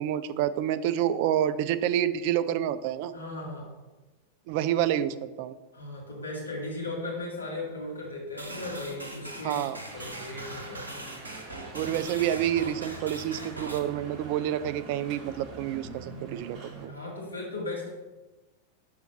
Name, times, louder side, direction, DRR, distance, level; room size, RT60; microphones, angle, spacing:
voice 1, 0.0-3.1 4.5-5.5 9.4-9.8 11.7-16.9, right 11 dB, 45° right, 13 dB, 0.3 m, -28 dB
voice 2, 3.1-3.7 5.7-9.6 9.9-10.9 16.9-17.9, left 2 dB, 75° left, -3 dB, 2.4 m, -37 dB
sound 1, 8.4-13.8, right 1 dB, 80° right, 0.9 m, -41 dB
sound 2, 9.9-16.9, right 3 dB, 30° right, 2.0 m, -45 dB
5.5 x 4.1 x 5.8 m, 1.1 s
figure-of-eight pair, 90°, 0 cm